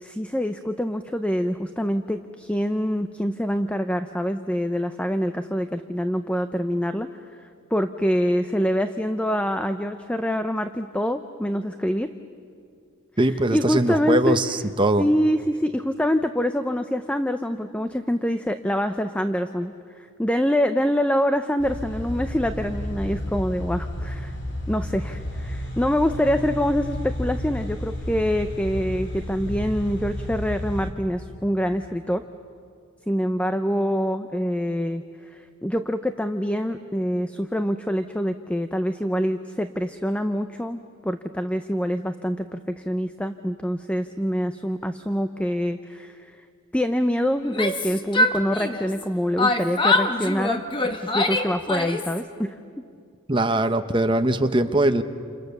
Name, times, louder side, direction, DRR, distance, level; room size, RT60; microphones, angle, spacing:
voice 1, 0.0-7.1 7.7-12.1 13.5-14.4 15.0-24.3 24.7-32.2 33.1-35.0 35.3-46.3 46.7-50.6 51.1-52.6, equal, 5° left, 9 dB, 0.6 m, -25 dB
voice 2, 13.2-15.0 53.3-55.0, right 1 dB, 25° right, 8 dB, 0.9 m, -21 dB
sound 1, 21.6-30.9, equal, 60° left, 2.8 m, -32 dB
Yell, 47.4-49.0 49.4-52.2, left 2 dB, 25° left, 1.3 m, -24 dB
29.0 x 28.0 x 6.7 m, 2.3 s
head